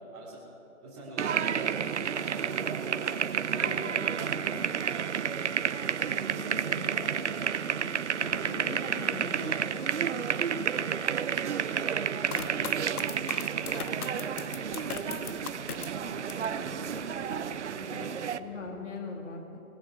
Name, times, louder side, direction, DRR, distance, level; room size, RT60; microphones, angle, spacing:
voice 1, 0.1-0.4 0.8-3.1 3.4-5.5 5.8-8.8 9.3-9.8 10.2-11.1 11.4-13.1 13.5-15.5 15.8-18.6, right 1 dB, 25° right, -9 dB, 3.1 m, -43 dB
sound 1, 1.2-18.4, right 8 dB, 55° right, 0.5 m, -31 dB
voice 2, 3.5-4.3 6.7-6.9 7.2-9.6 10.2-10.4 16.0-16.2 17.9-19.6, left 3 dB, 55° left, 2 dB, 2.7 m, -42 dB
sound 2, 3.5-12.7, left 1 dB, 10° left, 1.1 m, -63 dB
sound 3, 12.3-16.6 17.0-17.7, left 7 dB, 90° left, 0.7 m, -40 dB
19.0 x 16.0 x 4.7 m, 3.0 s
figure-of-eight pair, 150°, 43 cm